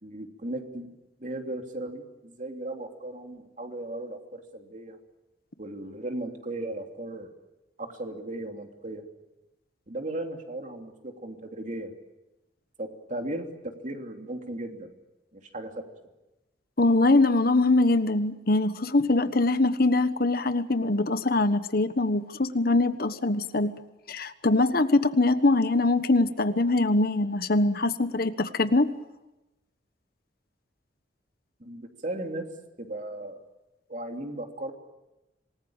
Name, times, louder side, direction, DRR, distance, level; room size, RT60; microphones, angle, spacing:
voice 1, 0.0-0.9 1.2-5.0 5.6-7.3 7.8-9.0 9.9-11.9 12.8-14.9 15.3-15.8 31.6-32.5 32.8-33.4 33.9-34.7, right 1 dB, 45° right, 4 dB, 3.1 m, -36 dB
voice 2, 16.8-23.7 24.1-28.9, left 2 dB, 55° left, 11 dB, 1.2 m, -23 dB
27.0 x 20.0 x 8.9 m, 1.0 s
head